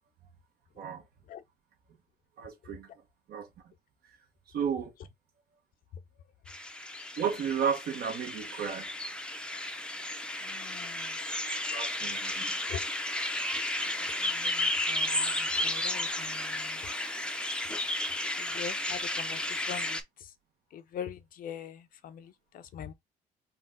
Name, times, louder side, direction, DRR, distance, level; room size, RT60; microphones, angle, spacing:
voice 1, 2.4-2.9 3.3-3.5 4.5-4.9 7.2-8.9 11.7-12.6, right 7 dB, 65° right, 1.3 m, -33 dB
sound 1, 6.5-20.0, left 1 dB, 5° left, 0.6 m, -33 dB
voice 2, 10.4-11.1 12.7-12.8 13.9-16.8 18.4-20.3 20.7-22.9, left 8 dB, 55° left, 0.6 m, -43 dB
4.0 x 2.3 x 3.8 m
cardioid pair, 110°, 17 cm